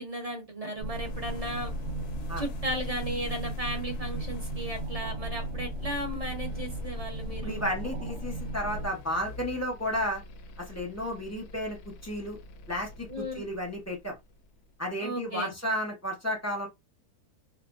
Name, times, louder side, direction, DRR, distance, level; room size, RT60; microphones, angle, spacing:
voice 1, 0.0-1.7 2.4-7.7 13.1-13.5 15.0-15.5, right 1 dB, 30° right, 0.7 m, -35 dB
sound 1, 0.8-14.6, left 1 dB, 85° left, 1.1 m, -45 dB
sound 2, 0.8-8.9, right 1 dB, 65° right, 0.9 m, -36 dB
voice 2, 7.4-10.2 10.6-11.8 12.0-12.4 12.7-14.1 14.8-16.7, equal, 15° left, 0.8 m, -32 dB
4.3 x 2.1 x 2.5 m
omnidirectional pair, 1.6 m